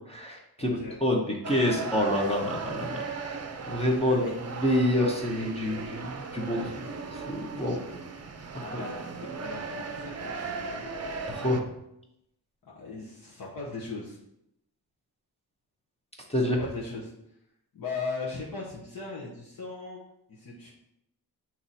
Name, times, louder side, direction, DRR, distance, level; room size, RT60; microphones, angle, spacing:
voice 1, 0.1-3.4 3.6-7.8 8.7-8.8 11.3-11.7 16.3-16.6, left 1 dB, 15° left, -1 dB, 0.7 m, -28 dB
voice 2, 0.6-1.0 4.0-4.3 8.6-10.9 12.6-14.2 16.4-17.1 17.7-20.0 20.3-20.7, left 4 dB, 65° left, -5 dB, 1.2 m, -38 dB
sound 1, 1.4-11.6, right 4 dB, 40° right, 0.6 m, -37 dB
7.5 x 3.0 x 4.1 m, 0.80 s
wide cardioid pair, 170°, 38 cm